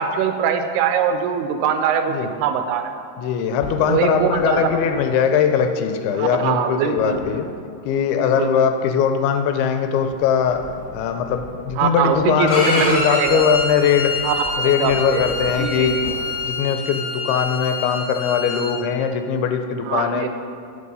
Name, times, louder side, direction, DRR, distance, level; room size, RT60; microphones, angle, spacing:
voice 1, 0.0-2.9 3.9-4.7 6.1-7.2 8.1-8.7 11.8-13.5 14.2-15.3 15.5-16.1 19.9-20.3, right 7 dB, 85° right, 7 dB, 2.6 m, -22 dB
voice 2, 3.2-7.5 7.9-14.2 14.6-16.0 16.4-20.3, left 7 dB, 85° left, 8 dB, 2.4 m, -20 dB
sound 1, 3.5-5.0 6.8-7.4 10.1-16.5, left 1 dB, 25° left, 2.0 m, -38 dB
Bowed string instrument, 12.5-18.7, left 3 dB, 55° left, 2.2 m, -26 dB
8.4 x 6.4 x 5.4 m, 2.3 s
omnidirectional pair, 4.6 m